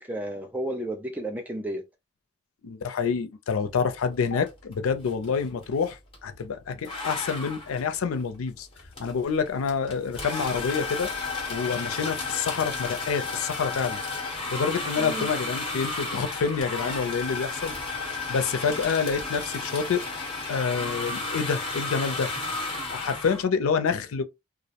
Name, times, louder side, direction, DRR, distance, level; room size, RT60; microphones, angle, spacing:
voice 1, 0.0-1.8 15.0-15.3, right 1 dB, 10° right, 0.3 m, -32 dB
voice 2, 2.6-8.7 9.0-11.1 11.5-14.0 14.5-17.7 18.3-20.0 20.5-22.3 22.9-24.2, left 6 dB, 90° left, 0.4 m, -27 dB
sound 1, 4.5-4.7 5.0-6.3 6.8-23.4, left 3 dB, 25° left, 0.8 m, -33 dB
2.3 x 2.0 x 2.7 m
head